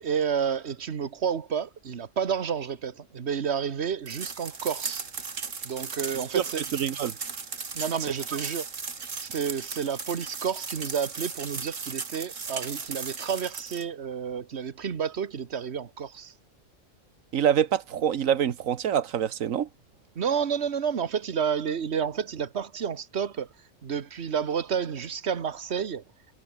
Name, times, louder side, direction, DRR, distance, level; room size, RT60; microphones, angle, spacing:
voice 1, 0.0-5.1 5.6-6.6 7.7-8.7 9.2-16.3 20.1-23.5 23.8-26.0, right 7 dB, 55° right, 1.5 m, -30 dB
sound 1, 4.1-13.8, right 5 dB, 75° right, 2.5 m, -36 dB
voice 2, 6.3-7.2 17.3-19.7, right 9 dB, 90° right, 1.4 m, -26 dB
omnidirectional pair, 1.3 m